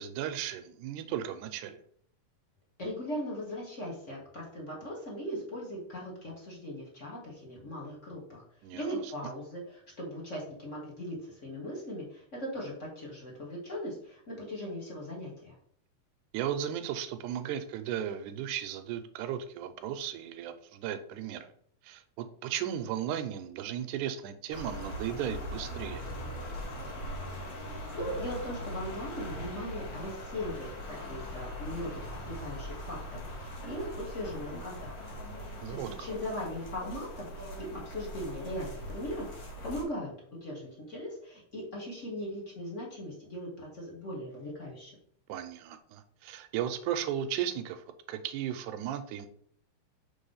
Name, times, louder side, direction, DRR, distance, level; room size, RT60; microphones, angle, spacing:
voice 1, 0.0-1.8 8.6-9.1 16.3-21.5 21.8-26.1 35.6-36.1 45.3-49.3, right 10 dB, 80° right, 9 dB, 1.9 m, -35 dB
voice 2, 2.8-8.4 8.7-15.5 27.6-44.9, equal, 30° left, -4 dB, 1.5 m, -39 dB
sound 1, 24.5-39.8, equal, 60° left, 2.9 m, -41 dB
5.4 x 3.7 x 5.5 m, 0.63 s
omnidirectional pair, 3.8 m